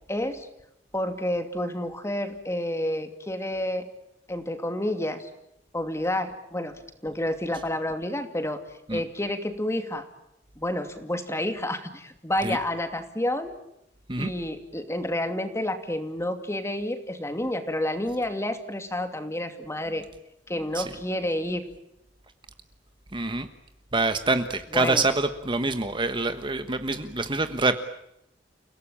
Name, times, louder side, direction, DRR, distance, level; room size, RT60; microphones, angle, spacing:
voice 1, 0.1-0.5 0.9-3.9 4.3-5.3 5.7-8.6 8.9-10.0 10.6-13.5 14.2-20.1 20.5-21.6 24.7-25.0, left 1 dB, 15° left, 7 dB, 2.6 m, -29 dB
voice 2, 23.1-23.5 23.9-27.8, right 3 dB, 25° right, 9 dB, 1.3 m, -26 dB
30.0 x 18.0 x 8.8 m, 0.82 s
head